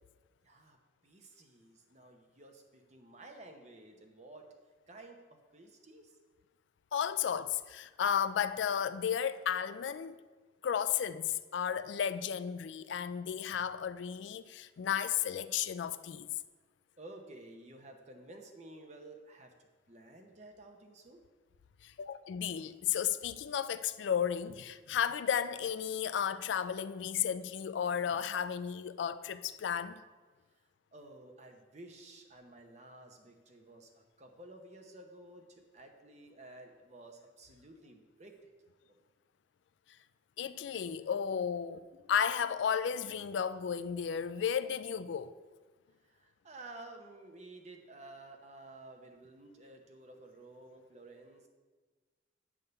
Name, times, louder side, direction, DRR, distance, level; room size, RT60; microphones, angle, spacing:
voice 1, 0.4-0.8 1.0-4.5 4.9-6.2 17.0-19.5 19.9-21.2 30.5-38.5 38.9-39.0 46.0-51.5, right 2 dB, 35° right, 0.8 m, -53 dB
voice 2, 6.9-10.2 10.6-16.3 21.8-30.0 40.4-41.8 42.1-45.3, left 8 dB, 75° left, 0.3 m, -33 dB
9.4 x 3.6 x 6.7 m
head